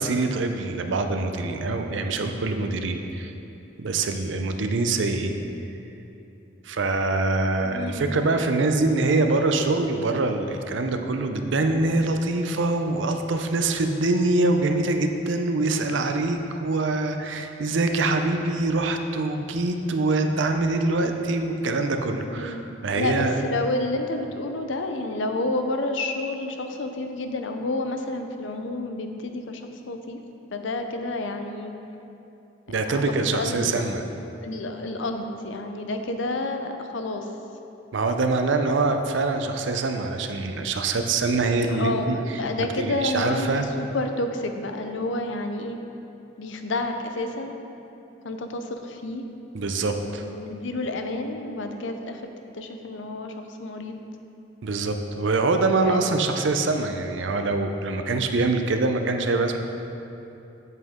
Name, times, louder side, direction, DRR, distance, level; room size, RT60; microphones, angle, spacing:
voice 1, 0.0-3.3 3.8-5.4 6.6-23.3 32.7-34.0 37.9-42.2 42.6-43.6 49.5-50.2 54.6-59.6, right 3 dB, 70° right, 6 dB, 0.6 m, -24 dB
voice 2, 1.6-2.0 2.4-2.7 7.6-8.1 22.3-29.6 29.9-30.2 30.5-31.7 32.9-34.0 34.2-37.3 41.7-45.8 46.4-47.6 48.2-49.2 50.0-52.2 52.5-54.0 55.8-56.1, left 2 dB, 70° left, 6 dB, 0.6 m, -30 dB
8.1 x 7.6 x 3.6 m, 2.8 s
head